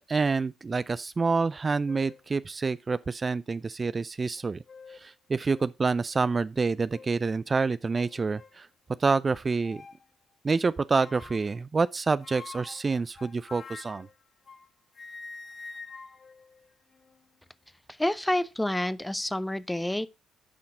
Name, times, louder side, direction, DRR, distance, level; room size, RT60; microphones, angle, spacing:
voice 1, 0.1-4.6 4.9-8.7 9.0-9.8 10.4-14.1, right 4 dB, 35° right, 0.3 m, -27 dB
sound 1, 1.4-1.6 1.9-2.3 3.0-3.1 4.4-5.1 5.5-5.7 6.1-6.3 6.9-7.2 7.9-8.6 9.6-10.1 11.0-11.6 12.2-14.7 14.9-17.3, left 4 dB, 40° left, 0.7 m, -47 dB
voice 2, 18.0-20.1, left 1 dB, 10° left, 0.7 m, -28 dB
10.0 x 5.8 x 3.5 m
hypercardioid pair, 45°, 0 cm